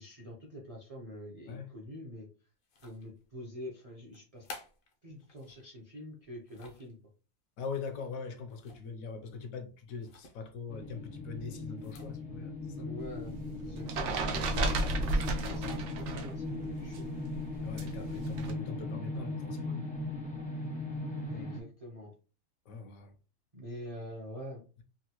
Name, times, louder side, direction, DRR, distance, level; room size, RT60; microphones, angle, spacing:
voice 1, 0.0-2.3 2.8-4.5 5.0-7.0 12.7-17.1 21.3-22.1 23.5-24.8, equal, 40° right, 0.5 m, -46 dB
sound 1, 2.6-3.3 4.1-5.7 6.2-6.9 8.5-9.0 9.3-9.4 10.0-10.4 11.7-12.2, left 3 dB, 60° left, 0.6 m, -51 dB
voice 2, 7.6-12.9 17.6-19.9 22.7-23.1, left 5 dB, 75° left, 1.0 m, -42 dB
sound 2, 10.7-21.6, left 2 dB, 10° left, 0.5 m, -38 dB
sound 3, 13.0-16.4 16.6-18.5, right 2 dB, 65° right, 0.8 m, -33 dB
3.6 x 2.2 x 2.8 m
omnidirectional pair, 1.5 m